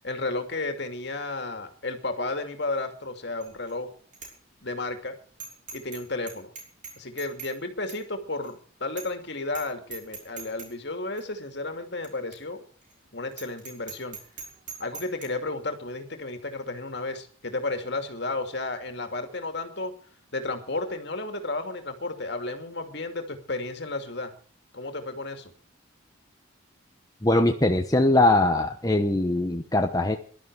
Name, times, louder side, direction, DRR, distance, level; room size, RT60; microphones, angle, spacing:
voice 1, 0.0-3.9 4.6-5.2 5.7-6.5 7.0-12.6 13.1-14.2 14.8-19.9 20.3-24.3 24.7-25.5, left 2 dB, 55° left, 6 dB, 2.6 m, -33 dB
Bicycle bell, 3.4-3.7 4.1-4.3 4.7-4.8 5.4-6.0 6.3-7.6 7.9-8.0 8.4-8.5 9.0-9.2 9.5-9.7 9.9-10.7 11.2-11.3 12.0-12.1 12.3-12.4 12.8-12.9 13.3-15.3, right 5 dB, 40° right, 6.1 m, -40 dB
voice 2, 27.2-30.2, left 2 dB, 20° left, 4 dB, 1.0 m, -21 dB
22.0 x 12.5 x 4.8 m, 0.43 s
head